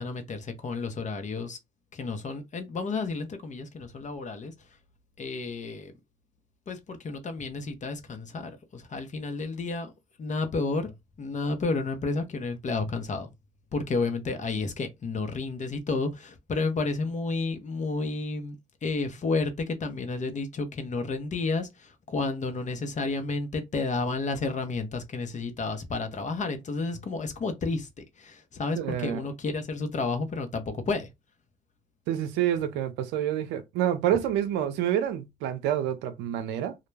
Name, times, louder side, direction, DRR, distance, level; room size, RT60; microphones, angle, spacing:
voice 1, 0.0-1.6 1.9-4.5 5.2-5.9 6.7-9.9 10.2-13.3 13.7-18.6 18.8-31.1, left 3 dB, 45° left, 0.8 m, -31 dB
voice 2, 28.8-29.2 32.1-36.8, right 10 dB, 80° right, 0.5 m, -28 dB
2.3 x 2.1 x 3.2 m
hypercardioid pair, 50°, 18 cm